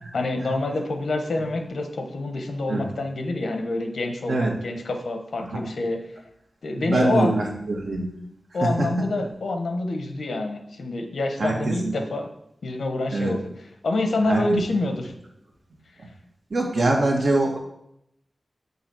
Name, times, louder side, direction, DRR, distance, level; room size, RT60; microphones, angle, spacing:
voice 1, 0.1-6.0 6.6-7.4 8.5-12.3 12.6-13.4 13.8-15.1, left 2 dB, 85° left, 5 dB, 0.9 m, -27 dB
voice 2, 6.8-8.1 8.6-8.9 9.2-9.3 11.4-11.9 13.1-13.4 14.2-14.5 16.0-16.1 16.5-17.6, right 2 dB, 65° right, 0 dB, 1.5 m, -24 dB
5.7 x 4.0 x 6.1 m, 0.77 s
wide cardioid pair, 75°, 0 cm